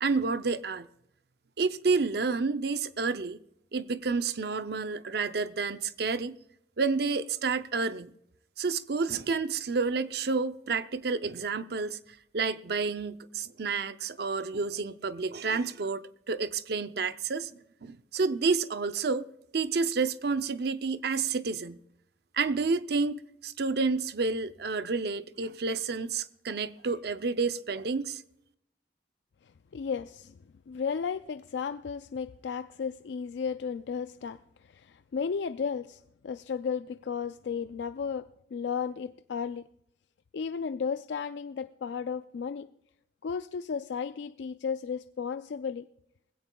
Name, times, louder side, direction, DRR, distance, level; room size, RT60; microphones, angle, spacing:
voice 1, 0.0-0.9 1.6-3.4 3.7-6.4 6.8-8.1 8.6-12.0 12.3-17.5 17.8-19.3 19.5-21.8 22.3-28.2, right 4 dB, 65° right, 0.6 m, -30 dB
voice 2, 29.7-30.4 30.7-39.7 40.3-42.7 43.2-45.9, left 6 dB, 80° left, 0.4 m, -34 dB
20.5 x 16.5 x 2.3 m
head